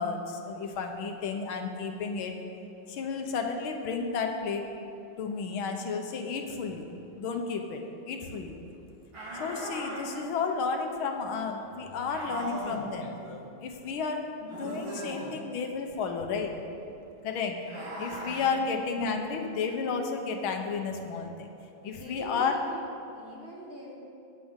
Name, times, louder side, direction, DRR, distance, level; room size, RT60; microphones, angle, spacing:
voice 1, 0.0-2.4 2.9-4.7 5.2-6.9 7.2-8.6 9.3-16.6 17.2-17.6 18.0-21.5 21.8-22.5, left 5 dB, 80° left, 4 dB, 1.8 m, -32 dB
sound 1, 9.1-10.1 12.1-12.8 14.5-15.3 17.6-18.5, right 1 dB, 80° right, 3.3 m, -38 dB
voice 2, 21.9-23.9, equal, 30° right, -3 dB, 1.6 m, -43 dB
19.5 x 7.6 x 3.7 m, 2.7 s
omnidirectional pair, 2.2 m